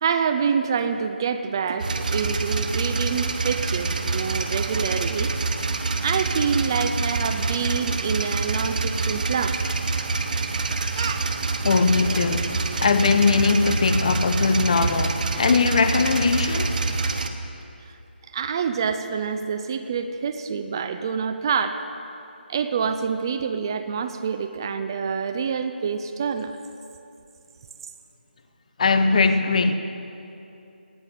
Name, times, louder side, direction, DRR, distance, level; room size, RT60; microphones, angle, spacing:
voice 1, 0.0-5.3 6.0-9.6 11.0-11.3 14.8-14.9 17.9-18.0 18.3-21.8 22.5-26.5, right 6 dB, 25° right, 9 dB, 0.5 m, -26 dB
sound 1, 1.8-17.3, right 3 dB, 50° right, 1.1 m, -26 dB
voice 2, 11.6-16.8 28.8-29.8, left 4 dB, 40° left, 9 dB, 0.9 m, -20 dB
18.0 x 7.0 x 9.0 m, 2.8 s
figure-of-eight pair, 165°, 6 cm